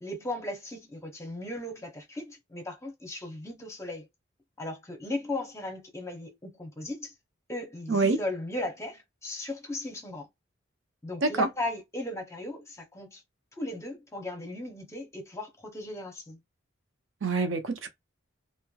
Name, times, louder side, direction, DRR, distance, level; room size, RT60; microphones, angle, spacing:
voice 1, 0.0-4.1 4.6-7.1 7.5-10.3 11.0-13.2 13.6-16.4, left 2 dB, 15° left, 0.7 m, -37 dB
voice 2, 17.2-17.9, right 3 dB, 70° right, 0.6 m, -26 dB
3.1 x 2.1 x 2.2 m
head